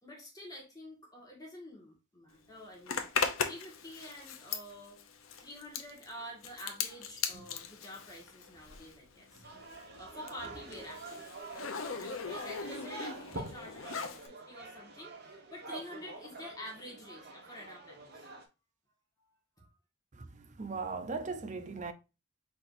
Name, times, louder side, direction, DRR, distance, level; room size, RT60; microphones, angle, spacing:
voice 1, 0.0-3.1 3.4-5.0 5.4-9.4 10.0-15.1 15.5-18.3 19.2-19.7, equal, 20° left, 1.7 m, -48 dB
Zipper (clothing), 2.9-9.0 9.3-14.3, left 6 dB, 80° left, 0.7 m, -38 dB
sound 1, 6.4-11.4, right 1 dB, 90° right, 2.3 m, -60 dB
sound 2, 9.4-18.4, right 2 dB, 50° right, 1.1 m, -46 dB
voice 2, 20.2-21.9, right 4 dB, 35° right, 0.6 m, -38 dB
4.6 x 4.1 x 2.6 m
head